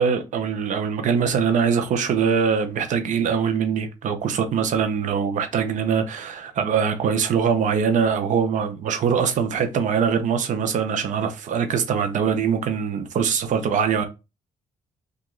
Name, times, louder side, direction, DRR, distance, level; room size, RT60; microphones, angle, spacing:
voice 1, 0.0-14.1, right 6 dB, 70° right, 0.7 m, -22 dB
2.9 x 2.5 x 3.7 m
cardioid pair, 70°, 13 cm